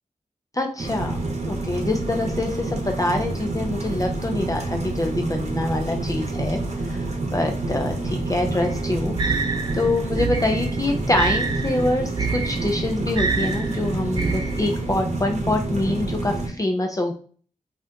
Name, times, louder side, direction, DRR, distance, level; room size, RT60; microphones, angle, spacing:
voice 1, 0.5-1.2 1.5-7.0 7.3-9.4 9.7-17.1, left 2 dB, 25° left, 3 dB, 0.5 m, -25 dB
sound 1, 0.8-16.5, right 2 dB, 55° right, 0.9 m, -28 dB
sound 2, 8.6-14.9, right 4 dB, 35° right, 0.6 m, -28 dB
5.3 x 2.5 x 2.7 m, 0.43 s
wide cardioid pair, 115°, 14 cm